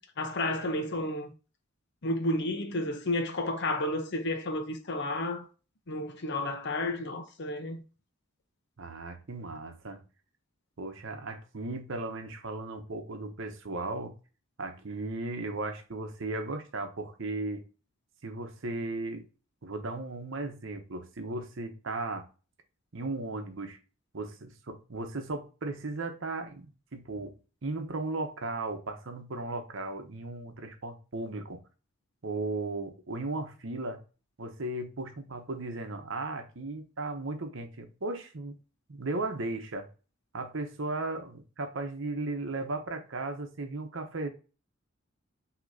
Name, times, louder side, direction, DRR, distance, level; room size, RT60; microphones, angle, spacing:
voice 1, 0.2-1.3 2.0-5.4 5.9-7.8, left 1 dB, 55° left, 0.8 m, -31 dB
voice 2, 8.8-10.0 10.8-14.1 14.6-17.6 18.2-19.2 19.6-22.3 22.9-23.8 24.1-27.4 27.6-31.6 32.2-34.0 34.4-38.6 38.9-39.9 40.3-44.3, right 2 dB, 65° right, 0.9 m, -36 dB
6.2 x 2.9 x 2.7 m
head